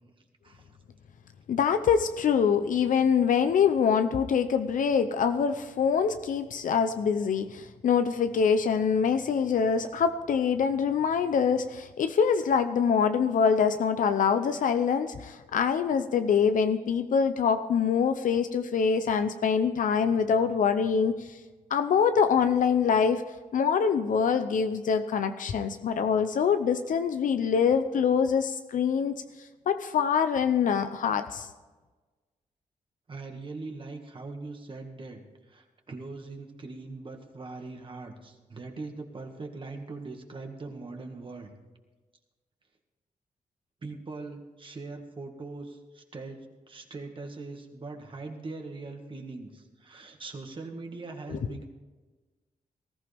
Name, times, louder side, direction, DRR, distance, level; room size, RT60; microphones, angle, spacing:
voice 1, 1.5-21.3 21.7-23.2 23.5-29.1 29.7-31.5, left 6 dB, 75° left, 9 dB, 0.7 m, -25 dB
voice 2, 33.1-35.2 35.5-41.5 43.8-51.7, right 3 dB, 40° right, 3 dB, 2.0 m, -41 dB
19.5 x 14.5 x 3.5 m, 1.3 s
wide cardioid pair, 110°, 14 cm